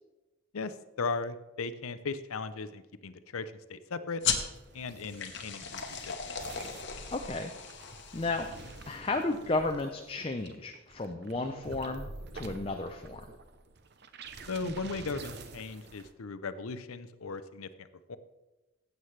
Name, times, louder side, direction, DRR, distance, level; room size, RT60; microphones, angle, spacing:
voice 1, 0.5-4.2 4.7-5.8 6.1-6.3 14.5-18.2, left 4 dB, 85° left, 12 dB, 0.6 m, -37 dB
sound 1, 4.2-9.3, left 7 dB, 55° left, 1.0 m, -37 dB
sound 2, 4.5-16.1, right 3 dB, 50° right, 0.7 m, -48 dB
voice 2, 7.1-7.5 8.1-8.5 8.9-12.1 12.3-13.2, left 2 dB, 25° left, 4 dB, 0.5 m, -33 dB
15.0 x 8.1 x 3.3 m, 1.1 s
head